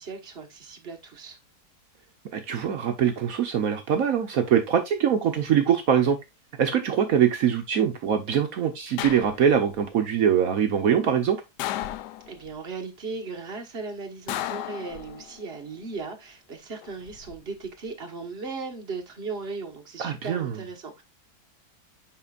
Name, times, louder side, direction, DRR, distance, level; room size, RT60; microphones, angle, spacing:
voice 1, 0.0-1.4 12.3-21.0, right 4 dB, 40° right, 1.4 m, -37 dB
voice 2, 2.3-6.2 6.6-11.4 20.0-20.6, right 8 dB, 65° right, 1.1 m, -23 dB
sound 1, 9.0-9.8 11.6-12.5 14.3-15.4 16.8-17.4, left 13 dB, 90° left, 1.2 m, -34 dB
10.0 x 3.8 x 2.4 m
omnidirectional pair, 1.7 m